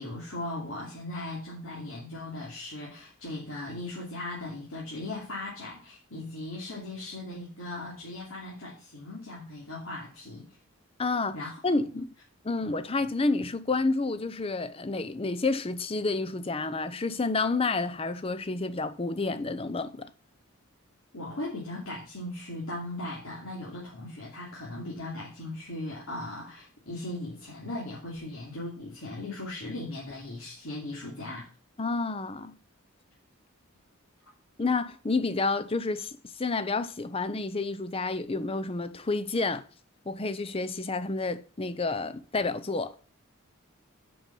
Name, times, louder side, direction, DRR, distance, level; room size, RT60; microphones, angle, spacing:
voice 1, 0.0-10.6 11.3-11.6 11.9-12.1 12.6-12.8 21.1-31.5, left 2 dB, 80° left, 2.8 m, -38 dB
voice 2, 11.0-11.4 11.6-12.1 12.5-20.1 31.8-32.6 34.6-39.6 40.1-43.0, left 3 dB, 25° left, 0.6 m, -29 dB
7.8 x 5.4 x 7.0 m
head